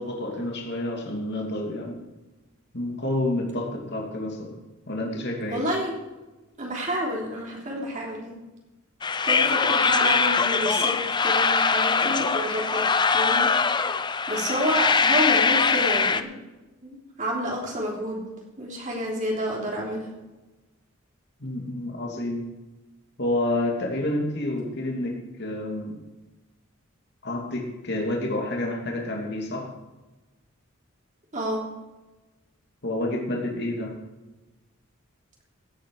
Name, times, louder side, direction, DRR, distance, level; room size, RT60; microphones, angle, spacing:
voice 1, 0.0-2.0 2.7-4.6 4.9-5.6 21.4-22.5 23.2-26.0 27.2-29.7 32.8-34.0, left 1 dB, 55° left, 0 dB, 2.7 m, -29 dB
voice 2, 5.5-5.9 6.6-8.4 9.2-11.0 11.2-12.8 13.1-13.5 14.3-16.3 16.8-18.2 18.6-20.1 31.3-31.6, equal, 40° right, -2 dB, 3.4 m, -29 dB
sound 1, 9.0-16.2, left 5 dB, 20° left, 0.6 m, -22 dB
16.5 x 9.0 x 4.8 m, 1.1 s
head